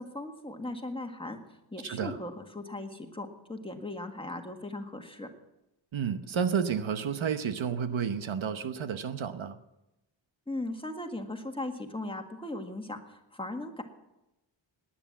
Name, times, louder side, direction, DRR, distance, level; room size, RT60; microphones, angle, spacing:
voice 1, 0.0-1.4 1.7-5.3 10.5-13.8, left 2 dB, 10° left, 4 dB, 1.7 m, -38 dB
voice 2, 1.8-2.2 5.9-9.6, right 7 dB, 80° right, 10 dB, 1.0 m, -31 dB
18.5 x 10.0 x 7.2 m, 0.94 s
wide cardioid pair, 110°, 47 cm